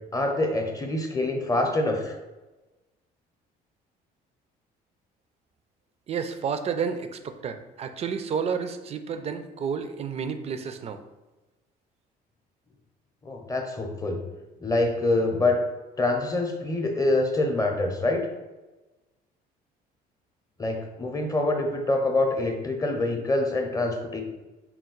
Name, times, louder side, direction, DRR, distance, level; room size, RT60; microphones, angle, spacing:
voice 1, 0.1-2.2 13.2-14.2 14.6-15.6 16.0-18.2 20.6-24.2, left 2 dB, 20° left, 3 dB, 0.6 m, -25 dB
voice 2, 6.1-11.0, right 6 dB, 40° right, 8 dB, 0.4 m, -31 dB
4.4 x 2.3 x 3.9 m, 1.1 s
cardioid pair, 110°, 17 cm